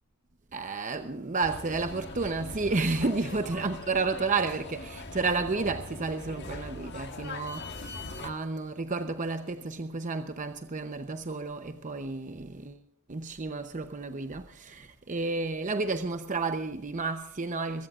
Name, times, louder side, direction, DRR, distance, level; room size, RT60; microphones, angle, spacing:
voice 1, 0.5-12.8 13.1-17.9, right 3 dB, 35° right, 0.8 m, -31 dB
sound 1, 1.4-8.3, left 2 dB, 50° left, 1.5 m, -41 dB
23.0 x 16.5 x 2.5 m
head